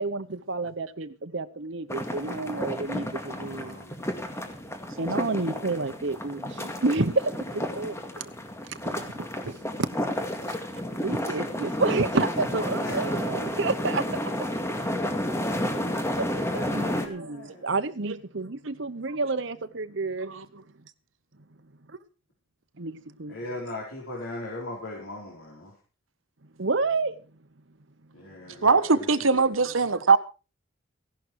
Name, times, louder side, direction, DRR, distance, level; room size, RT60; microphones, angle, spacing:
voice 1, 0.0-3.9 4.2-4.4 5.0-8.3 8.6-9.9 10.3-14.5 16.2-20.3 21.9-22.0 22.8-23.4 26.6-27.2, right 3 dB, 60° right, 1.0 m, -30 dB
sound 1, 1.9-17.1, left 1 dB, 15° left, 2.1 m, -31 dB
voice 2, 2.9-4.0 12.8-13.0 16.5-17.7 23.3-25.8 28.1-29.7, left 2 dB, 85° left, 4.8 m, -39 dB
voice 3, 28.6-30.2, right 4 dB, 80° right, 1.3 m, -21 dB
16.5 x 11.5 x 4.7 m
head